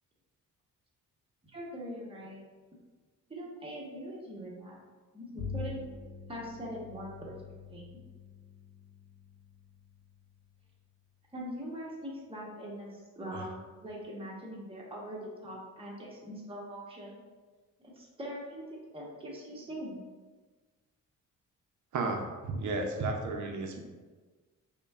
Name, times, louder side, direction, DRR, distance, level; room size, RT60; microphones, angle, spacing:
voice 1, 1.4-2.4 3.3-4.8 5.1-5.8 6.3-7.3 7.7-7.8 11.3-17.2 17.8-20.0, equal, 15° right, -4 dB, 1.0 m, -42 dB
Bowed string instrument, 5.4-11.0, left 4 dB, 90° left, 0.6 m, -45 dB
voice 2, 21.9-23.8, right 3 dB, 60° right, 3 dB, 0.6 m, -33 dB
5.1 x 2.2 x 2.4 m, 1.3 s
cardioid pair, 70°, 34 cm